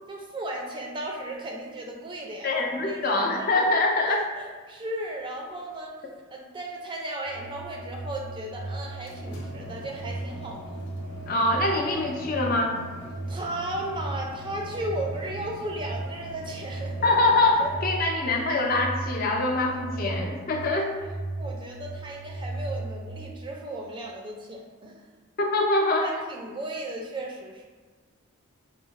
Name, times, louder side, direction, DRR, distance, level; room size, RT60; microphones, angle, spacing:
voice 1, 0.1-2.5 2.9-3.5 4.1-5.9 6.3-10.6 13.3-17.1 17.6-17.7 20.6-21.0 21.4-25.1 26.0-27.7, right 1 dB, 20° right, 0 dB, 0.4 m, -35 dB
voice 2, 2.4-4.3 11.3-12.8 17.0-20.9 25.4-26.1, left 2 dB, 40° left, 1 dB, 0.4 m, -24 dB
sound 1, 7.3-23.3, right 2 dB, 90° right, 0.6 m, -37 dB
sound 2, 8.8-17.7, equal, 85° left, 0.7 m, -45 dB
4.5 x 2.0 x 3.0 m, 1.4 s
head